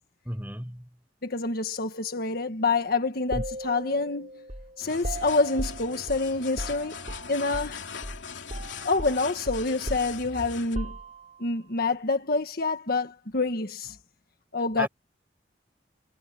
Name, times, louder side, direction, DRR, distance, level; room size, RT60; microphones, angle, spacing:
voice 1, 0.2-0.9 3.3-3.4 14.8-14.9, equal, 10° right, 7.4 m, -33 dB
voice 2, 1.2-4.4 4.8-7.0 7.3-7.8 8.8-11.0 11.4-13.9 14.5-14.9, left 3 dB, 55° left, 1.6 m, -27 dB
sound 1, 3.3-7.8 8.0-8.2 8.5-11.5, right 1 dB, 40° right, 6.0 m, -37 dB
sound 2, 4.8-10.8, left 5 dB, 90° left, 2.7 m, -41 dB
head